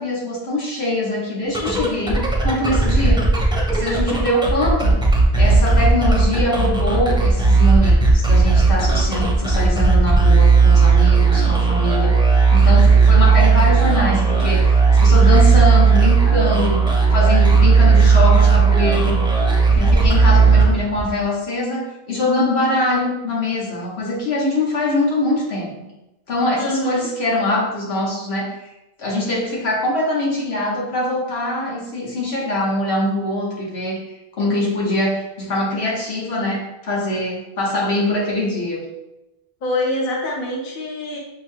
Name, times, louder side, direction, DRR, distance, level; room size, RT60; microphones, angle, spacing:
voice 1, 0.0-3.2 3.7-5.0 5.4-19.2 19.7-25.7 26.3-28.7 29.0-34.0 34.3-38.8, left 1 dB, 90° left, -4 dB, 1.4 m, -23 dB
sound 1, 1.4-21.2, right 4 dB, 5° right, 0.6 m, -15 dB
voice 2, 26.6-27.1 39.6-41.2, left 1 dB, 60° left, 0 dB, 0.8 m, -24 dB
5.9 x 2.1 x 3.2 m, 0.96 s
omnidirectional pair, 1.0 m